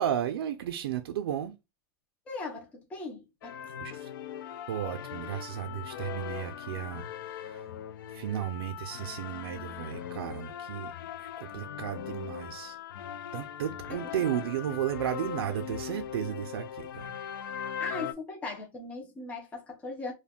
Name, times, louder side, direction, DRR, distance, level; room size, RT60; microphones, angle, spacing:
voice 1, 0.0-1.5 3.8-4.1 4.7-7.7 8.1-10.9 11.2-12.8 13.3-17.2, right 10 dB, 85° right, 0.4 m, -34 dB
voice 2, 2.3-3.6 13.9-14.0 17.8-20.1, left 3 dB, 10° left, 0.5 m, -39 dB
sound 1, 3.4-18.1, left 10 dB, 65° left, 0.4 m, -40 dB
2.4 x 2.2 x 3.5 m
supercardioid pair, 170°, 12 cm